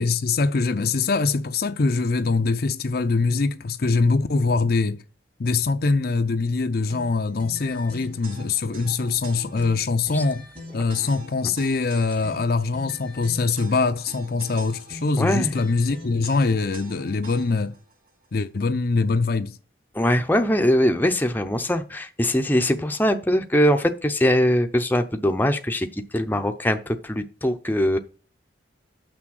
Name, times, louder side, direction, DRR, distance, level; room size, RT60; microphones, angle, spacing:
voice 1, 0.0-5.0 5.4-10.4 10.7-17.7 18.3-19.6, left 4 dB, 55° left, 0.5 m, -23 dB
sound 1, 6.9-17.8, equal, 50° right, 3.0 m, -42 dB
voice 2, 15.2-15.5 19.9-28.0, equal, 10° left, 0.6 m, -22 dB
6.7 x 6.1 x 6.4 m
head